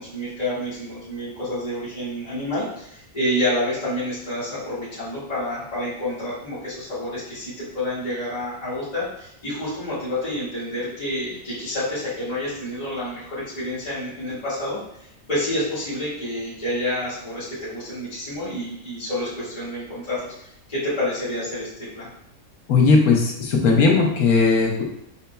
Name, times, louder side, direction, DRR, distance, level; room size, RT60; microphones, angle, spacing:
voice 1, 0.0-21.7 21.9-22.1, left 1 dB, 25° left, -12 dB, 1.9 m, -28 dB
voice 2, 22.7-25.1, left 4 dB, 85° left, 0 dB, 1.4 m, -18 dB
5.7 x 4.0 x 2.2 m, 0.74 s
omnidirectional pair, 1.5 m